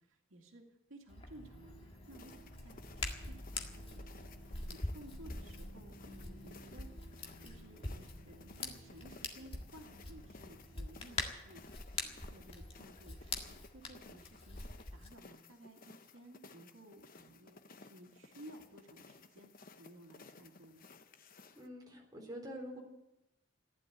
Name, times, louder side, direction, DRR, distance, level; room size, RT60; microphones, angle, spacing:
voice 1, 0.0-6.9 7.4-11.6 12.0-14.6 14.9-17.6 17.9-19.5 19.8-20.9, right 1 dB, 85° right, 2 dB, 2.3 m, -57 dB
Hands, 1.1-15.1, left 2 dB, 30° left, 1.8 m, -45 dB
sound 1, 1.2-10.8, equal, 50° right, 7.6 m, -58 dB
sound 2, 2.0-21.7, left 4 dB, 45° left, 0.9 m, -58 dB
voice 2, 21.6-22.8, equal, 20° right, -1 dB, 4.0 m, -46 dB
15.0 x 11.5 x 8.1 m, 0.90 s
head